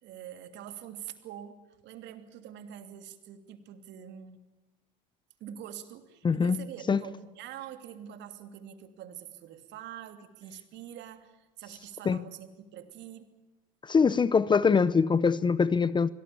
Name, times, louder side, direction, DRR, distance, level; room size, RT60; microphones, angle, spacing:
voice 1, 0.0-4.4 5.4-13.4, right 10 dB, 60° right, 3.0 m, -45 dB
voice 2, 6.2-6.6 6.9-7.0 12.0-12.2 13.8-16.1, left 5 dB, 20° left, 0.8 m, -23 dB
25.0 x 18.0 x 8.6 m
supercardioid pair, 105°, 21 cm